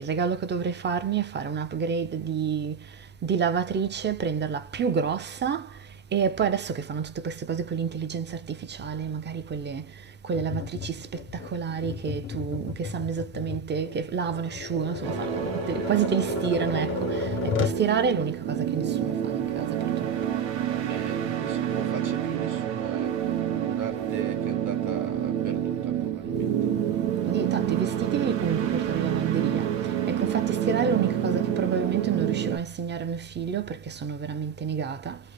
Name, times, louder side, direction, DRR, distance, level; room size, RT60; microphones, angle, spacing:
voice 1, 0.0-2.8 3.2-5.7 6.1-9.9 10.2-17.3 17.6-19.7 20.0-20.1 27.2-29.7 30.1-35.2, right 6 dB, 25° right, 0.5 m, -29 dB
Tap, 10.3-17.9, left 8 dB, 30° left, 0.4 m, -34 dB
sound 1, 15.0-32.6, right 10 dB, 85° right, 0.7 m, -28 dB
voice 2, 20.8-23.3 23.6-26.7, right 5 dB, 45° right, 1.1 m, -40 dB
2.9 x 2.0 x 2.9 m
cardioid pair, 105°, 43 cm